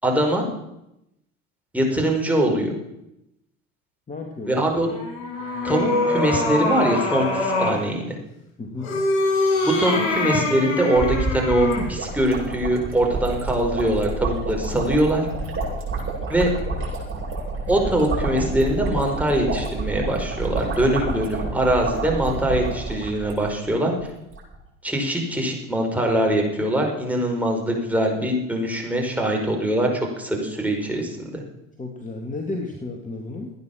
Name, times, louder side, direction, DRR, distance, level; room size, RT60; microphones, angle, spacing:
voice 1, 0.0-0.4 1.7-2.7 4.5-4.9 5.6-8.2 9.6-15.2 16.3-16.5 17.7-23.9 24.8-31.4, right 1 dB, 5° right, 0 dB, 5.2 m, -22 dB
voice 2, 4.1-4.6 8.6-8.9 31.8-33.5, left 3 dB, 20° left, 2 dB, 2.4 m, -32 dB
sound 1, 4.8-7.8 8.8-11.9, left 2 dB, 60° left, 7.0 m, -24 dB
sound 2, 11.0-23.7 24.0-24.1 24.3-24.5, right 3 dB, 30° right, 8.0 m, -29 dB
16.0 x 9.9 x 7.3 m, 0.85 s
hypercardioid pair, 75°, 41 cm